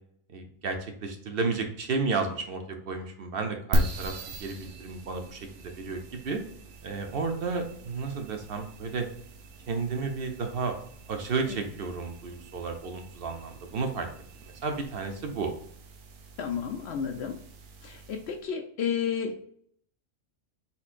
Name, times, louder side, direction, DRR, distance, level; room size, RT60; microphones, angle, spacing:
voice 1, 0.3-4.1 4.4-6.4 6.8-9.1 9.7-10.8 11.1-14.1 14.6-15.5, right 4 dB, 50° right, 5 dB, 0.8 m, -32 dB
sound 1, 3.7-18.4, right 1 dB, 70° right, 1.0 m, -38 dB
voice 2, 16.4-17.4 17.8-19.4, left 7 dB, 65° left, 4 dB, 0.7 m, -32 dB
4.3 x 4.2 x 2.5 m, 0.63 s
omnidirectional pair, 1.5 m